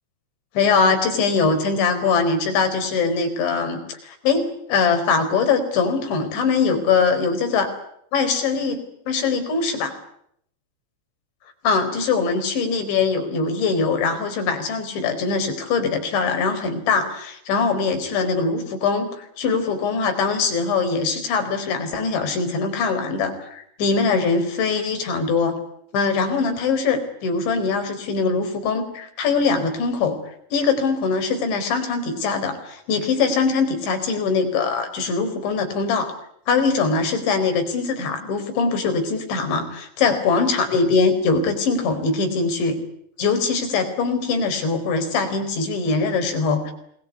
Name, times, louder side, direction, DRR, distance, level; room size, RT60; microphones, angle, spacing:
voice 1, 0.5-7.7 8.1-9.9 11.6-25.6 25.9-30.2 30.5-36.1 36.5-42.8 43.2-46.7, left 4 dB, 90° left, 7 dB, 6.8 m, -22 dB
27.0 x 21.0 x 9.6 m, 0.71 s
omnidirectional pair, 5.1 m